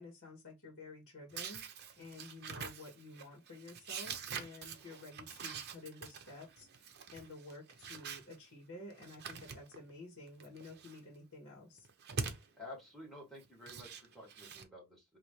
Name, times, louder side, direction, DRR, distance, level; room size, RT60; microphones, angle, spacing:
voice 1, 0.0-1.6 2.0-11.9, left 2 dB, 60° left, 1.5 m, -51 dB
sound 1, 1.3-8.4 8.9-9.9 10.3-11.0 11.8-12.5 13.4-14.6, right 6 dB, 50° right, 0.7 m, -45 dB
voice 2, 12.6-15.2, left 1 dB, ahead, 2.5 m, -51 dB
4.0 x 2.7 x 3.1 m
head